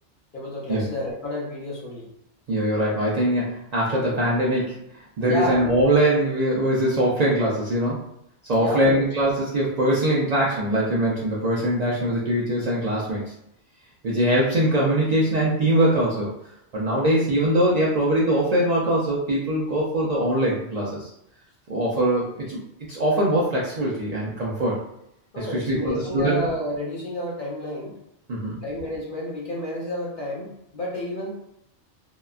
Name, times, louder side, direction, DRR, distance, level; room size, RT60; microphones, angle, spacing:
voice 1, 0.3-2.1 5.3-5.6 8.6-9.0 25.3-27.9 28.6-31.3, left 1 dB, 50° left, -4 dB, 0.8 m, -30 dB
voice 2, 2.5-8.1 8.5-13.3 14.0-16.3 16.7-21.1 21.7-22.6 22.9-24.8 25.4-26.4 28.3-28.6, right 1 dB, 60° right, -5 dB, 0.4 m, -22 dB
2.8 x 2.2 x 2.3 m, 0.80 s
omnidirectional pair, 1.2 m